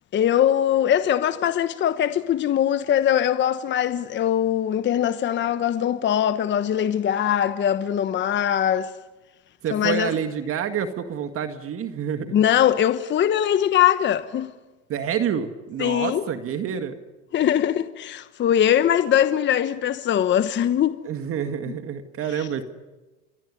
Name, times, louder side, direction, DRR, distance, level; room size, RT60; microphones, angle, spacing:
voice 1, 0.1-8.9 9.7-10.1 12.3-14.5 15.8-16.2 17.3-21.0 22.4-22.5, left 10 dB, 30° left, 1.2 m, -21 dB
voice 2, 9.6-12.4 14.9-17.0 21.0-22.6, right 8 dB, 35° right, 1.9 m, -28 dB
27.0 x 21.5 x 9.9 m
supercardioid pair, 120°, 36 cm